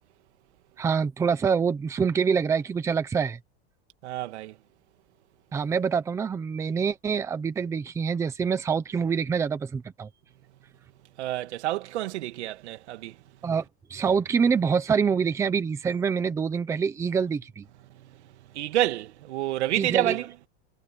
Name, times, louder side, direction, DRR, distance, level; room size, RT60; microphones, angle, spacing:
voice 1, 0.8-3.4 5.5-10.1 13.4-13.6 13.9-17.7 19.8-20.2, right 6 dB, 10° right, 0.8 m, -26 dB
voice 2, 4.0-4.5 11.2-13.2 18.0-18.1 18.5-20.3, right 14 dB, 90° right, 2.7 m, -28 dB
supercardioid pair, 175°, 33 cm